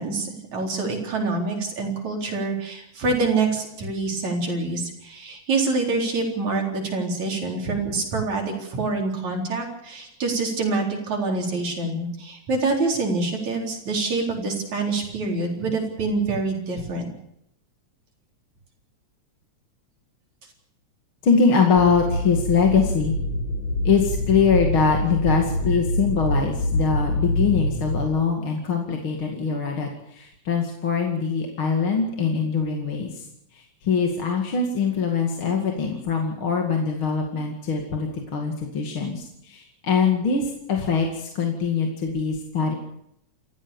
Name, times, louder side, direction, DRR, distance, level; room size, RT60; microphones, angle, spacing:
voice 1, 0.0-17.1, right 3 dB, 70° right, 1 dB, 5.4 m, -26 dB
voice 2, 21.2-23.2 23.8-33.3 33.5-42.7, left 5 dB, 45° left, 2 dB, 2.9 m, -23 dB
sound 1, 21.8-28.1, left 1 dB, 65° left, 4.4 m, -25 dB
28.5 x 14.5 x 7.1 m, 0.76 s
omnidirectional pair, 3.4 m